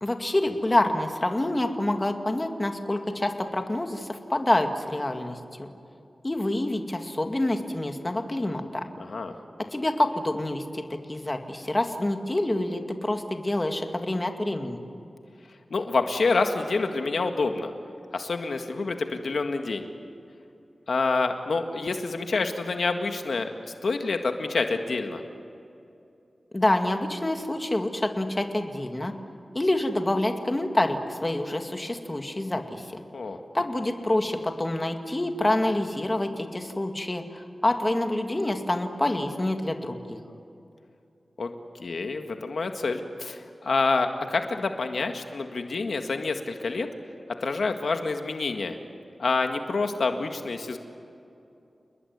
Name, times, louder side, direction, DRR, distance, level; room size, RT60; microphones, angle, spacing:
voice 1, 0.0-5.7 6.2-8.9 9.7-14.9 26.5-29.1 29.5-33.0 33.5-40.2, left 1 dB, 25° left, 5 dB, 2.3 m, -27 dB
voice 2, 15.7-17.7 18.1-19.9 20.9-23.5 23.8-25.2 33.1-33.4 41.4-41.5 41.8-46.9 47.4-48.8 49.2-50.8, left 3 dB, 80° left, 6 dB, 1.8 m, -27 dB
29.0 x 20.5 x 9.6 m, 2.6 s
wide cardioid pair, 85°, 0 cm